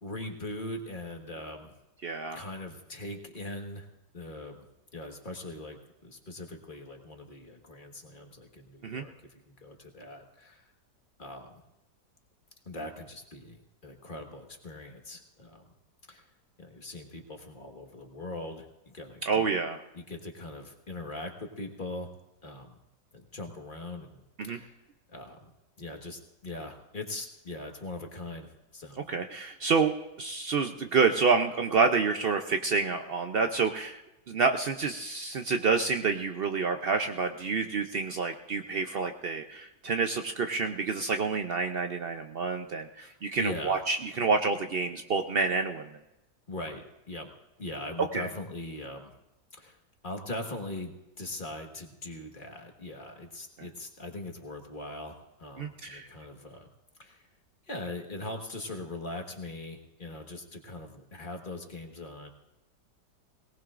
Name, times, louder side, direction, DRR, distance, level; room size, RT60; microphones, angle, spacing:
voice 1, 0.0-1.7 2.3-3.9 4.1-4.7 4.9-9.1 9.5-10.7 11.2-11.6 12.6-15.7 16.1-16.3 16.6-19.4 19.9-22.1 22.4-22.8 23.1-24.8 25.1-25.5 25.8-29.0 43.0-43.8 46.5-47.3 47.6-49.1 49.5-49.8 50.0-56.7 57.0-57.3 57.7-62.3, left 2 dB, 30° left, 3 dB, 1.5 m, -41 dB
voice 2, 2.0-2.4 8.8-9.0 19.2-19.8 24.4-24.6 29.1-29.9 30.2-34.0 34.3-45.9 48.1-48.3 55.6-56.1, right 4 dB, 85° right, 6 dB, 0.5 m, -28 dB
22.5 x 18.5 x 2.5 m, 0.93 s
omnidirectional pair, 1.9 m